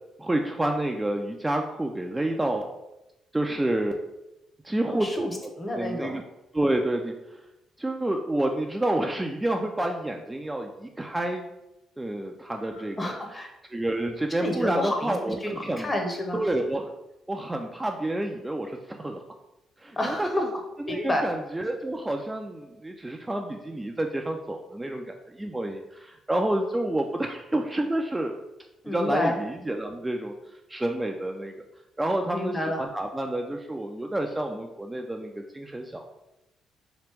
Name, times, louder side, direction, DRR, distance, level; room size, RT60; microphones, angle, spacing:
voice 1, 0.2-2.8 3.3-4.0 4.6-5.3 5.7-6.2 6.5-7.4 7.8-11.4 12.0-13.2 13.7-15.9 16.3-16.9 17.3-19.2 19.8-20.5 20.9-28.4 28.9-31.5 32.0-36.1, right 1 dB, 15° right, 2 dB, 0.3 m, -29 dB
voice 2, 4.9-6.2 12.7-13.5 14.4-15.2 15.4-16.4 20.0-20.4 20.9-21.2 28.8-29.4 32.3-32.8, left 1 dB, 25° left, 3 dB, 0.8 m, -29 dB
3.0 x 2.9 x 3.2 m, 0.92 s
supercardioid pair, 60°, 0 cm